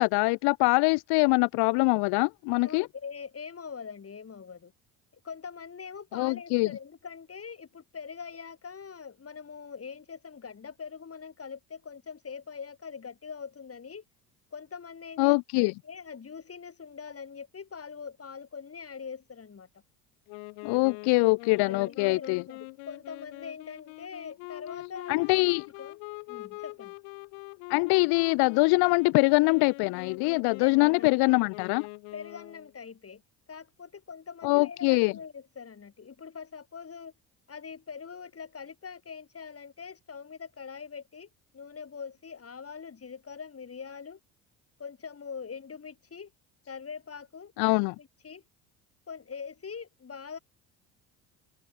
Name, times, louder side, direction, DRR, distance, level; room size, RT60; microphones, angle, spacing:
voice 1, 0.0-2.9 6.1-6.7 15.2-15.7 20.6-22.4 25.1-25.6 27.7-31.9 34.4-35.1 47.6-47.9, left 27 dB, 55° left, 0.5 m, -23 dB
voice 2, 2.6-4.7 5.2-14.0 14.5-19.7 21.6-25.5 25.8-26.0 26.3-26.9 30.6-31.3 32.1-33.2 33.5-37.1 37.5-44.2 44.8-46.3 46.7-48.4 49.1-50.4, left 6 dB, 30° left, 4.5 m, -43 dB
Wind instrument woodwind instrument, 20.3-32.7, left 36 dB, 75° left, 6.3 m, -44 dB
hypercardioid pair, 70°, 46 cm